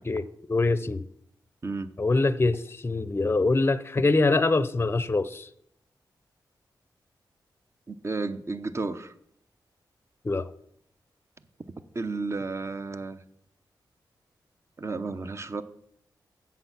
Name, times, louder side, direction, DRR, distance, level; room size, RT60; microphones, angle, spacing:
voice 1, 0.0-1.1 2.0-5.5 10.2-10.5, left 3 dB, 30° left, 15 dB, 0.5 m, -24 dB
voice 2, 7.9-9.1 11.9-13.2 14.8-15.6, right 3 dB, 35° right, 12 dB, 0.7 m, -32 dB
7.8 x 7.2 x 5.8 m, 0.69 s
cardioid pair, 55°, 8 cm